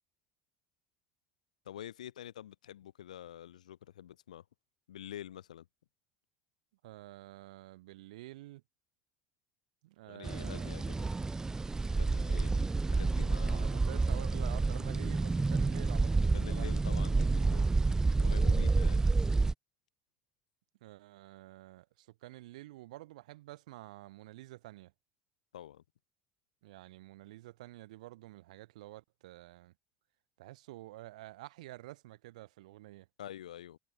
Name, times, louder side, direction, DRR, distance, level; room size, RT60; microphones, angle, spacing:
voice 1, 1.7-4.4 4.9-5.7 10.1-11.1 11.8-13.7 16.3-17.7 18.2-19.1 25.5-25.8 33.2-33.8, left 11 dB, 90° left, 2.3 m, -47 dB
voice 2, 6.8-8.6 9.8-10.9 13.4-16.7 20.8-24.9 26.6-29.7 30.4-33.1, right 17 dB, 80° right, 1.2 m, -49 dB
sound 1, 10.2-19.5, right 3 dB, 15° right, 0.5 m, -29 dB
hypercardioid pair, 80°, 4 cm